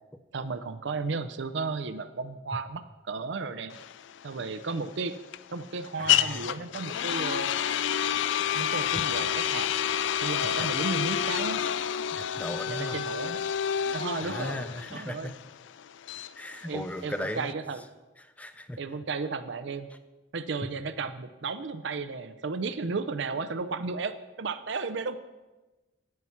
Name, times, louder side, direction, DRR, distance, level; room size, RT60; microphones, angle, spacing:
voice 1, 0.3-3.8 4.2-5.1 5.5-7.5 8.5-9.7 10.2-11.6 12.7-13.4 13.9-14.6 14.9-15.3 16.6-17.8 18.8-19.9 20.3-25.2, right 4 dB, 65° right, 12 dB, 0.6 m, -34 dB
sound 1, 3.7-17.5, left 9 dB, 65° left, 0.3 m, -29 dB
voice 2, 6.0-6.5 10.4-10.7 12.1-13.0 14.2-15.3 16.4-17.5 18.2-18.8, left 1 dB, 5° left, 10 dB, 0.5 m, -37 dB
9.7 x 9.2 x 5.8 m, 1.1 s
head